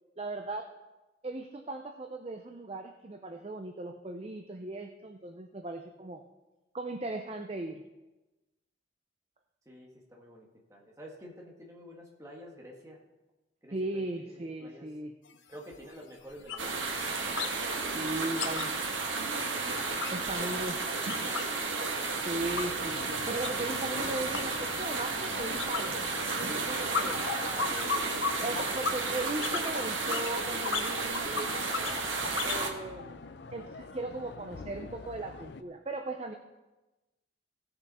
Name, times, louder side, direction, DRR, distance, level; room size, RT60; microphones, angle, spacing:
voice 1, 0.2-0.7 1.2-6.3 6.7-7.8 13.7-15.1 17.9-18.7 20.1-20.8 22.2-27.2 28.4-32.1 32.4-33.2 33.5-36.3, right 2 dB, 30° right, 5 dB, 0.5 m, -38 dB
voice 2, 9.6-13.0 13.6-14.9 15.5-16.8 18.2-18.8 20.2-21.4 27.2-28.1, equal, 15° right, -2 dB, 1.8 m, -48 dB
sound 1, 15.3-15.4 15.7-15.9 16.2-17.6 17.8-21.6 21.9-32.7, left 5 dB, 90° left, 0.8 m, -37 dB
sound 2, 16.6-32.7, right 4 dB, 90° right, 1.6 m, -33 dB
sound 3, 22.4-35.6, left 4 dB, 65° left, 0.5 m, -46 dB
16.5 x 6.7 x 4.2 m, 1.1 s
head